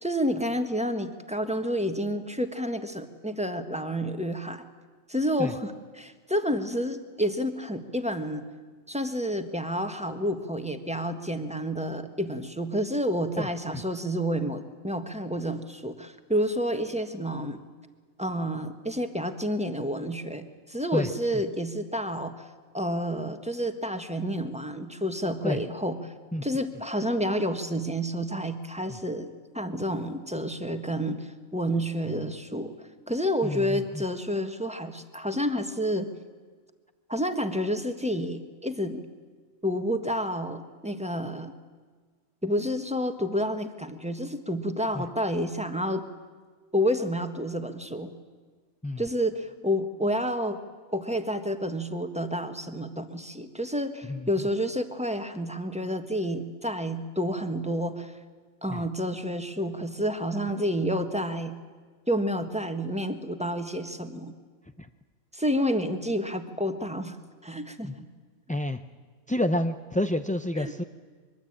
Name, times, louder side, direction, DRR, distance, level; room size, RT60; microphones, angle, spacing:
voice 1, 0.0-4.6 5.1-8.4 8.9-17.6 18.2-22.4 22.7-26.1 26.4-32.7 33.1-36.1 37.1-39.0 39.6-41.5 42.4-46.0 46.7-48.1 49.0-50.6 50.9-58.1 58.6-61.5 62.1-64.3 65.3-67.2 67.4-68.1 70.6-70.7, equal, 5° right, 7 dB, 1.5 m, -29 dB
voice 2, 13.4-13.8 20.9-21.1 25.4-25.6 26.3-26.4 33.4-34.0 44.9-45.0 48.8-49.0 54.1-54.3 58.7-58.8 64.8-64.9 67.8-67.9 68.5-68.8 69.3-70.8, left 1 dB, 10° left, 8 dB, 0.4 m, -29 dB
24.0 x 23.0 x 8.9 m, 1.5 s
omnidirectional pair, 1.4 m